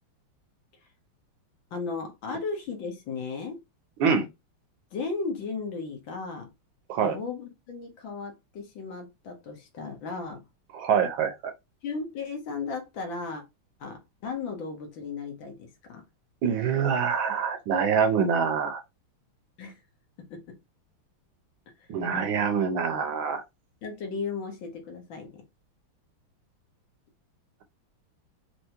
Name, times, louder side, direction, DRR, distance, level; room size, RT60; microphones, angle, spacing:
voice 1, 1.7-3.6 4.9-6.5 7.0-10.4 11.8-13.4 13.8-16.0 19.6-19.8 20.3-20.4 21.8-21.9 23.8-25.4, left 4 dB, 65° left, 1.7 m, -35 dB
voice 2, 10.7-11.5 16.4-18.8 21.9-23.4, right 6 dB, 75° right, 1.4 m, -25 dB
4.5 x 2.7 x 2.9 m
omnidirectional pair, 2.4 m